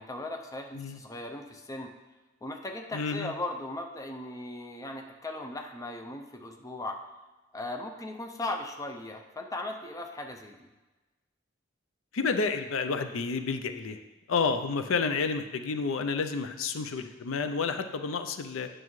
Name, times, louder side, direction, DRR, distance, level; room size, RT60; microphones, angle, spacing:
voice 1, 0.0-1.9 2.4-7.0 7.5-10.7, left 2 dB, 15° left, 3 dB, 0.5 m, -38 dB
voice 2, 2.9-3.3 12.1-14.0 14.3-18.7, left 4 dB, 80° left, 9 dB, 0.5 m, -30 dB
9.3 x 6.2 x 3.1 m, 1.1 s
head